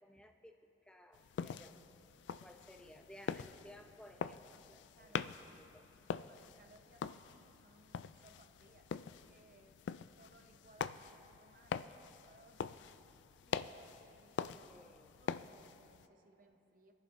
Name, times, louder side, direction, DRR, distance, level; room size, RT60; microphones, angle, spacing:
voice 1, 0.0-1.8 2.4-5.9 14.7-15.1, left 1 dB, 5° left, 4 dB, 0.7 m, -58 dB
sound 1, 1.1-16.1, left 7 dB, 75° left, 0.3 m, -45 dB
voice 2, 5.0-5.3 6.3-9.8 10.2-14.9 15.2-16.9, right 1 dB, 45° right, 4 dB, 1.0 m, -65 dB
28.5 x 10.5 x 2.7 m, 2.8 s
head